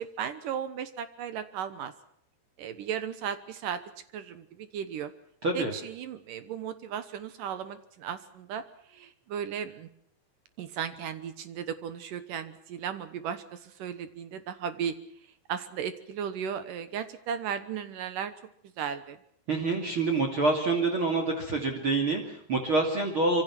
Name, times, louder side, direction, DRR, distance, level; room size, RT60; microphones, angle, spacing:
voice 1, 0.0-1.9 2.6-3.8 4.1-5.1 5.5-8.6 8.9-9.9 10.6-15.0 15.5-18.3 18.8-19.2, right 8 dB, 65° right, 11 dB, 2.5 m, -35 dB
voice 2, 5.4-5.7 19.5-23.4, right 3 dB, 35° right, 3 dB, 3.0 m, -27 dB
25.5 x 25.0 x 6.1 m, 0.67 s
omnidirectional pair, 4.6 m